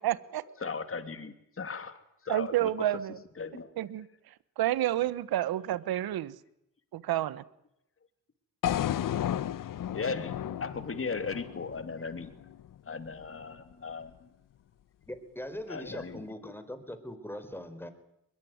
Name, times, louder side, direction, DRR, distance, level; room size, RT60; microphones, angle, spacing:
voice 1, 0.0-0.4 2.3-3.2 3.8-6.3 6.9-7.4, right 13 dB, 80° right, 17 dB, 1.3 m, -30 dB
voice 2, 0.6-2.7 3.4-3.7 9.9-12.3 12.9-14.3 15.7-16.3, left 4 dB, 35° left, 9 dB, 3.0 m, -37 dB
sound 1, 8.6-12.8, left 11 dB, 60° left, 0.9 m, -33 dB
voice 3, 15.1-17.9, left 1 dB, 5° left, 10 dB, 4.5 m, -41 dB
22.0 x 22.0 x 9.5 m, 0.80 s
cardioid pair, 70°, 36 cm